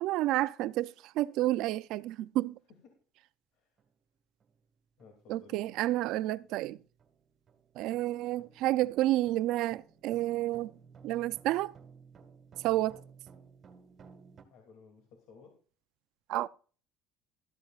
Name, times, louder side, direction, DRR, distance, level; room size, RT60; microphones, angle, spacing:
voice 1, 0.0-2.6 5.3-6.8 7.8-10.7 11.0-11.7 12.6-13.0 16.3-16.5, right 15 dB, 70° right, 0.4 m, -30 dB
sound 1, 3.8-3.9 4.4-4.6 5.0-14.4, right 6 dB, 35° right, 1.9 m, -57 dB
voice 2, 5.0-5.6 14.5-15.5, left 5 dB, 70° left, 2.6 m, -57 dB
13.5 x 13.5 x 2.5 m
cardioid pair, 120°, 0 cm